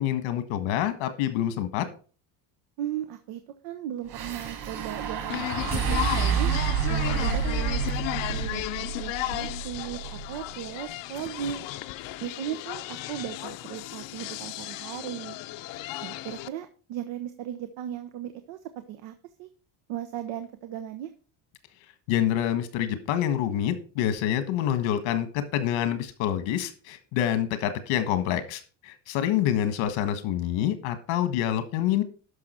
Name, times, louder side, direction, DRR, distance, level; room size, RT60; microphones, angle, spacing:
voice 1, 0.0-1.8 22.1-32.0, left 11 dB, 90° left, 10 dB, 1.6 m, -27 dB
voice 2, 2.8-6.5 6.9-10.0 10.3-11.6 12.2-15.4 16.0-18.6 18.9-19.1 19.4-19.5 19.9-21.1, right 11 dB, 90° right, 9 dB, 1.0 m, -37 dB
sound 1, 4.1-10.5, right 7 dB, 60° right, 4.8 m, -29 dB
sound 2, 5.3-16.5, left 16 dB, 70° left, 0.7 m, -34 dB
12.0 x 5.7 x 4.4 m, 0.38 s
cardioid pair, 135°, 46 cm